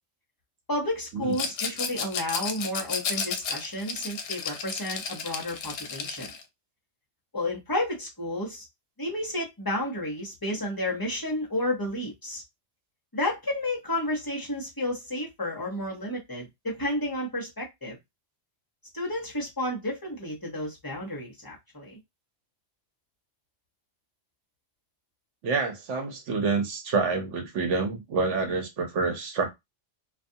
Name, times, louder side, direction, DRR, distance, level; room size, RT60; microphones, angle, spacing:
voice 1, 0.7-6.3 7.3-8.7 9.0-12.4 13.1-18.0 18.9-22.0, left 1 dB, 20° left, 0.7 m, -31 dB
Rattle, 1.3-6.4, left 6 dB, 70° left, 0.8 m, -33 dB
voice 2, 25.4-29.5, right 4 dB, 75° right, 1.0 m, -27 dB
2.4 x 2.4 x 2.6 m
omnidirectional pair, 1.3 m